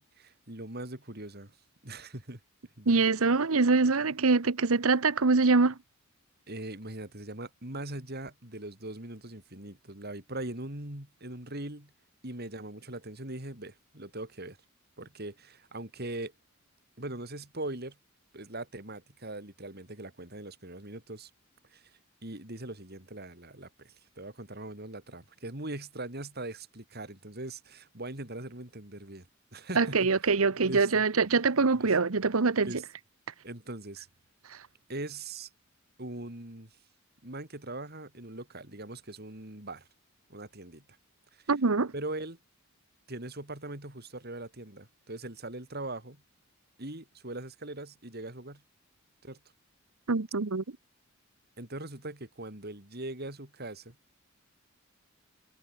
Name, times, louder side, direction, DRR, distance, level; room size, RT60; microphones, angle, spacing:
voice 1, 0.0-1.6 1.8-2.4 2.8-3.0 6.5-11.9 12.2-14.6 15.0-16.3 17.0-18.0 18.3-21.3 21.7-29.3 29.5-30.0 30.6-31.0 31.7-31.9 32.6-32.8 33.4-34.1 34.9-35.5 36.0-36.8 37.2-39.9 40.3-40.8 41.3-41.5 41.9-42.4 43.1-46.2 46.8-48.6 49.2-49.4 51.6-53.9, right 2 dB, 50° right, 4.8 m, -41 dB
voice 2, 2.9-5.7 29.8-32.7 41.5-41.9 50.1-50.6, right 4 dB, 85° right, 1.0 m, -24 dB
head